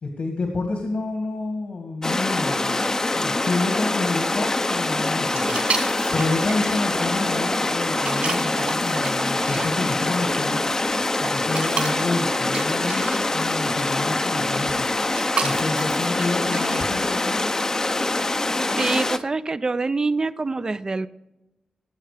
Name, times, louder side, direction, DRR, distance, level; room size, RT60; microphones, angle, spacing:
voice 1, 0.0-2.8 3.1-5.6 6.1-10.6 11.2-15.0 15.4-17.5, left 3 dB, 70° left, 3 dB, 2.0 m, -29 dB
sound 1, 2.0-19.2, left 2 dB, 25° left, 0.7 m, -24 dB
sound 2, 5.3-17.0, right 4 dB, 65° right, 4.0 m, -34 dB
sound 3, 6.9-14.2, right 4 dB, 90° right, 2.0 m, -38 dB
voice 2, 18.8-21.1, right 3 dB, 30° right, 13 dB, 0.5 m, -25 dB
18.5 x 7.9 x 5.0 m, 0.98 s
wide cardioid pair, 100°, 2 cm